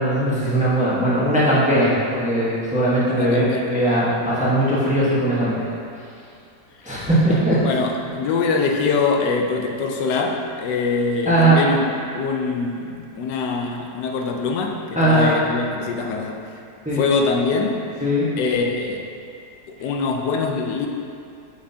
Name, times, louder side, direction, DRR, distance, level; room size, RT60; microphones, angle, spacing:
voice 1, 0.0-5.6 6.8-7.6 11.2-11.6 15.0-15.3 16.8-17.0 18.0-18.3, right 1 dB, 5° right, -9 dB, 0.9 m, -19 dB
voice 2, 3.1-3.7 7.6-16.4 16.9-17.9 18.4-19.1 19.8-20.9, left 4 dB, 85° left, 2 dB, 1.2 m, -23 dB
6.0 x 5.9 x 2.7 m, 2.4 s
omnidirectional pair, 1.8 m